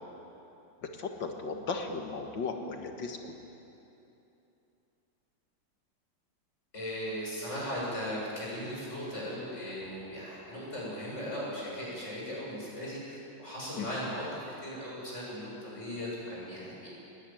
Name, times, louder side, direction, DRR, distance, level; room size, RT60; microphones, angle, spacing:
voice 1, 0.8-3.3 13.8-13.9, left 4 dB, 85° left, 4 dB, 2.5 m, -36 dB
voice 2, 6.7-16.9, equal, 40° left, -6 dB, 8.2 m, -38 dB
20.5 x 17.5 x 9.4 m, 2.9 s
omnidirectional pair, 1.9 m